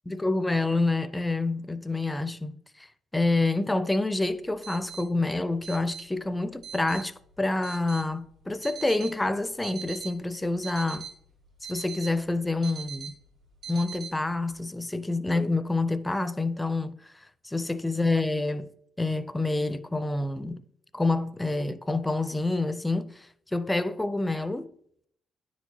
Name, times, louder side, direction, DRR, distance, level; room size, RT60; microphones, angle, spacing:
voice 1, 0.1-2.9 3.1-11.1 11.7-13.1 13.7-17.1 17.4-18.7 19.0-20.6 20.9-23.3 23.5-24.7, left 2 dB, 10° left, 0.4 m, -27 dB
sound 1, 4.1-14.5, right 7 dB, 85° right, 2.4 m, -43 dB
10.0 x 4.6 x 2.8 m
cardioid pair, 90°, 0 cm